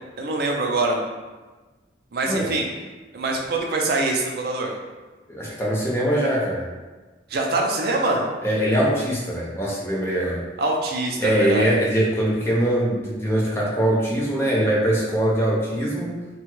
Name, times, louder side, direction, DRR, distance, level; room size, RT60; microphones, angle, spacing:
voice 1, 0.2-1.0 2.1-2.7 3.1-4.7 7.3-8.2 10.6-11.7, right 2 dB, 50° right, 0 dB, 0.4 m, -24 dB
voice 2, 5.3-6.6 8.4-10.4 11.2-16.1, right 1 dB, 15° left, -5 dB, 0.5 m, -22 dB
2.8 x 2.3 x 3.0 m, 1.3 s
head